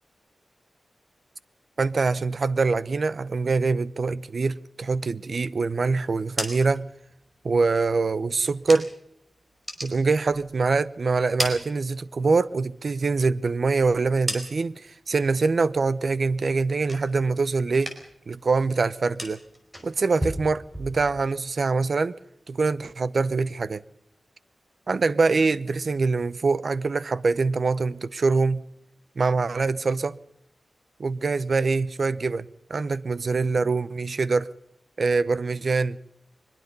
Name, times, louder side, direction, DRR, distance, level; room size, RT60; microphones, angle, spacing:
voice 1, 1.8-6.9 7.4-8.9 9.8-17.9 18.3-19.4 19.8-22.2 22.5-23.8 24.9-28.6 29.2-30.2 31.0-34.5 35.0-36.0, right 4 dB, 50° right, 0.7 m, -24 dB
sound 1, 6.3-9.2 9.5-10.8 11.1-12.4 12.8-14.9 15.3-15.7 16.1-17.4 17.7-18.3 18.5-21.4, equal, 10° right, 4.2 m, -37 dB
22.5 x 21.5 x 5.4 m
wide cardioid pair, 155°, 0 cm